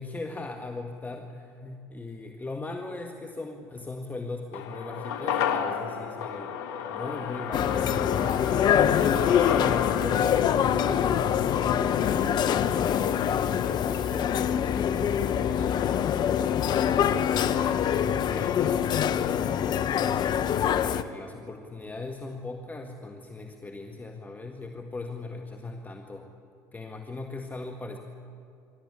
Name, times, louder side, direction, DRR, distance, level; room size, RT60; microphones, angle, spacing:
voice 1, 0.0-9.2 10.0-13.0 13.3-16.0 16.7-19.6 20.3-26.3 26.7-28.0, left 3 dB, 20° left, 3 dB, 1.8 m, -39 dB
sound 1, 4.5-13.0 13.3-13.4, left 8 dB, 80° left, 1.5 m, -33 dB
sound 2, 7.5-21.0, left 9 dB, 50° left, 1.0 m, -24 dB
25.5 x 13.0 x 9.9 m, 2.6 s
hypercardioid pair, 75°, 9 cm